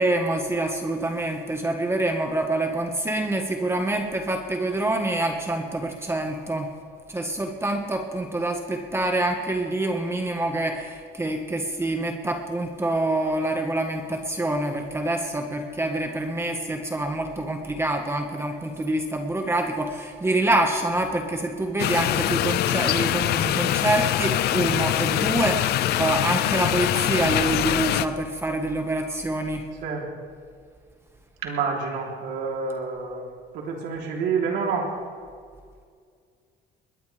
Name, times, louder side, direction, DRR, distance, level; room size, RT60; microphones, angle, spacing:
voice 1, 0.0-6.7 7.1-29.7, right 2 dB, 15° right, 3 dB, 1.4 m, -26 dB
sound 1, 21.8-28.1, left 13 dB, 70° left, 0.6 m, -23 dB
voice 2, 31.4-33.2 33.5-34.9, right 5 dB, 85° right, -1 dB, 3.4 m, -28 dB
21.5 x 19.5 x 3.4 m, 2.1 s
cardioid pair, 110°, 17 cm